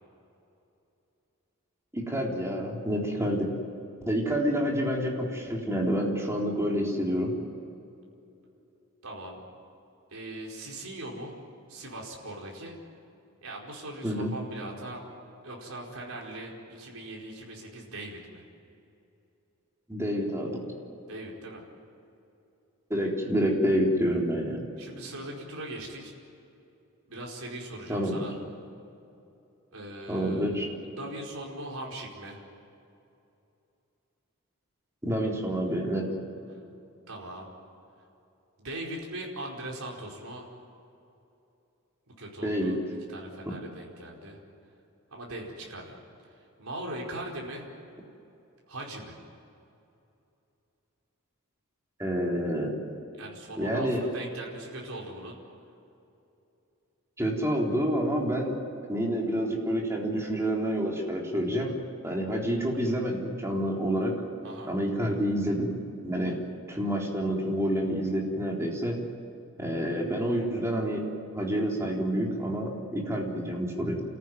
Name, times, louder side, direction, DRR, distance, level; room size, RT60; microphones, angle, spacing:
voice 1, 1.9-3.5 4.1-7.3 14.0-14.3 19.9-20.7 22.9-24.6 27.9-28.3 30.1-30.7 35.0-36.1 42.4-42.7 43.5-43.6 52.0-52.8 53.6-54.0 57.2-58.6 58.9-64.2 64.6-65.7 66.0-66.4 66.7-69.0 69.6-71.1 71.3-74.0, equal, 15° right, -1 dB, 3.8 m, -28 dB
voice 2, 9.0-9.4 10.1-11.4 11.7-12.8 13.4-15.0 15.4-18.4 21.1-21.7 24.8-26.1 27.1-28.4 29.7-30.5 30.9-32.4 36.5-36.6 37.1-37.5 38.6-40.5 42.1-42.8 43.1-44.4 45.1-46.0 46.2-47.7 48.7-49.2 53.2-55.4 64.4-64.7, right 1 dB, 75° right, -2 dB, 4.8 m, -40 dB
29.5 x 14.5 x 9.5 m, 2.7 s
head